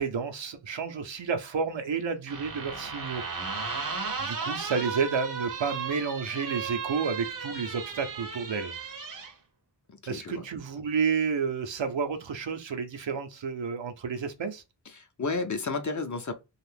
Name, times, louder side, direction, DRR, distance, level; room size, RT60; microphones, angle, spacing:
voice 1, 0.0-3.2 4.2-8.7 10.1-14.6, right 5 dB, 85° right, 0.7 m, -30 dB
sound 1, 2.3-9.3, right 5 dB, 45° right, 0.6 m, -35 dB
voice 2, 10.1-10.5 14.9-16.3, left 3 dB, 40° left, 0.6 m, -32 dB
2.6 x 2.4 x 3.3 m
wide cardioid pair, 65°, 44 cm